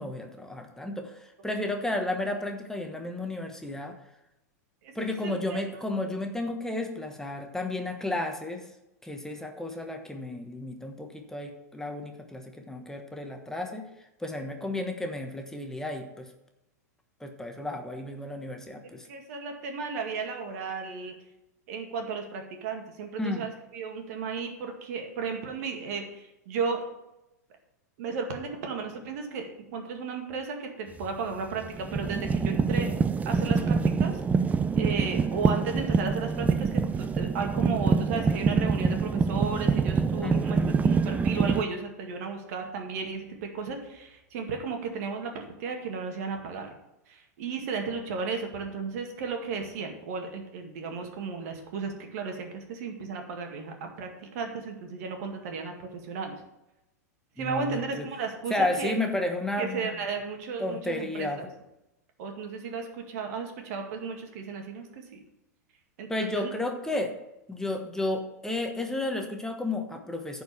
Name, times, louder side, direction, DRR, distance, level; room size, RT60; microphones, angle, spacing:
voice 1, 0.0-4.0 4.9-8.6 9.0-13.8 14.2-16.3 17.2-19.1 23.2-23.5 40.2-41.0 57.4-58.0 58.5-59.9 60.6-61.5 66.1-67.1 67.5-70.4, left 2 dB, 5° left, 3 dB, 1.2 m, -32 dB
voice 2, 5.2-5.8 19.1-21.2 21.7-26.8 28.0-32.9 33.3-34.2 34.7-46.7 47.1-56.4 57.4-58.9 59.6-61.5 62.2-65.2 66.0-66.5, right 5 dB, 60° right, 4 dB, 2.1 m, -34 dB
sound 1, 31.0-31.2 31.6-41.6, right 5 dB, 15° right, 0.5 m, -25 dB
10.0 x 4.8 x 7.1 m, 0.91 s
hypercardioid pair, 105°, 9 cm